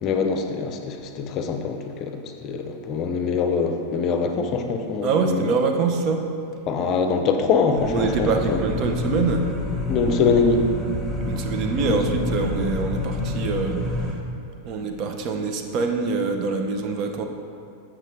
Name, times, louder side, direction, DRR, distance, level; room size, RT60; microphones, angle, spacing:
voice 1, 0.0-5.5 6.7-8.6 9.9-10.7 11.9-12.0, left 5 dB, 35° left, 6 dB, 0.6 m, -23 dB
voice 2, 5.0-6.3 7.9-9.5 11.3-14.2 14.6-17.2, right 4 dB, 40° right, 5 dB, 0.6 m, -25 dB
sound 1, 7.8-14.1, left 2 dB, 15° right, 0.9 m, -28 dB
7.6 x 6.0 x 3.2 m, 2.5 s
figure-of-eight pair, 90°, 0 cm